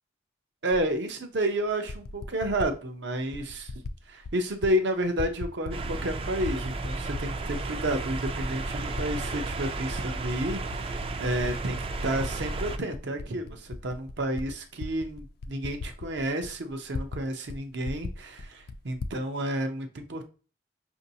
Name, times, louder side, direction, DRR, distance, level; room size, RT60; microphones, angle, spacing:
voice 1, 0.6-3.7 4.1-20.2, right 1 dB, 70° right, 6 dB, 0.7 m, -31 dB
Typing, 0.7-0.8 1.7-2.7 3.3-4.0 4.2-4.7 5.0-6.1 6.4-7.6 8.1-8.2 8.8-9.6 9.9-12.3 12.6-17.2 17.5-17.6 17.8-19.2, left 3 dB, 55° left, 0.3 m, -38 dB
sound 1, 5.7-12.8, right 3 dB, 30° right, 0.4 m, -33 dB
5.3 x 2.7 x 2.7 m, 0.36 s
head